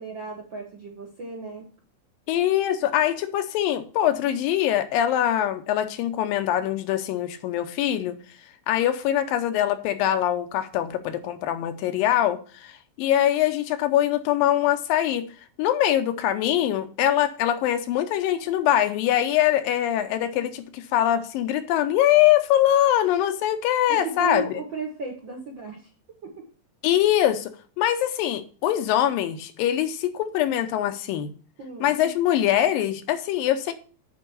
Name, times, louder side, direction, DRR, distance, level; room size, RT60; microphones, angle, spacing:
voice 1, 0.0-1.7 23.9-25.8 26.2-26.3 31.6-32.0, right 3 dB, 60° right, 1.2 m, -34 dB
voice 2, 2.3-8.2 8.7-15.3 15.6-24.6 26.8-27.5 27.8-31.3 31.8-33.7, left 12 dB, 85° left, 2.5 m, -23 dB
8.1 x 4.7 x 6.9 m
omnidirectional pair, 4.0 m